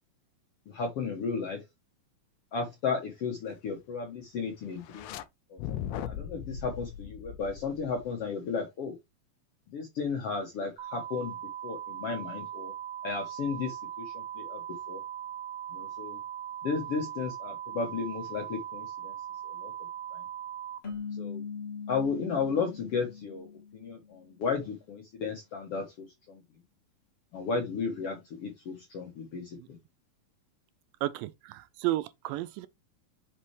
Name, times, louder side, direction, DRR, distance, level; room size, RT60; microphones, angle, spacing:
voice 1, 0.7-1.6 2.5-5.1 5.5-9.0 9.7-11.4 11.6-12.7 13.0-14.6 14.9-15.0 15.7-16.2 16.6-19.1 19.4-19.7 20.1-20.2 21.2-21.4 21.9-23.5 23.7-26.4 27.3-29.8, left 5 dB, 65° left, 1.5 m, -34 dB
sound 1, 4.8-5.2 5.6-8.2, left 9 dB, 85° left, 1.8 m, -38 dB
sound 2, 10.8-20.8, right 10 dB, 65° right, 1.7 m, -40 dB
sound 3, 20.8-24.2, left 6 dB, 25° left, 1.1 m, -41 dB
voice 2, 31.0-32.7, right 16 dB, 80° right, 2.2 m, -32 dB
5.8 x 5.6 x 3.2 m
omnidirectional pair, 4.2 m